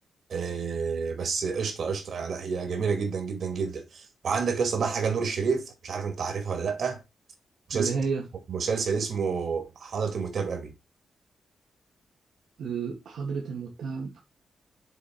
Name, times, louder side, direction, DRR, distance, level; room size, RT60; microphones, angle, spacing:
voice 1, 0.3-7.0 7.7-7.9 8.5-10.7, right 5 dB, 70° right, 2.4 m, -29 dB
voice 2, 7.7-8.2 12.6-14.2, right 5 dB, 85° right, 1.9 m, -31 dB
7.1 x 4.3 x 5.2 m
cardioid pair, 90°, 0 cm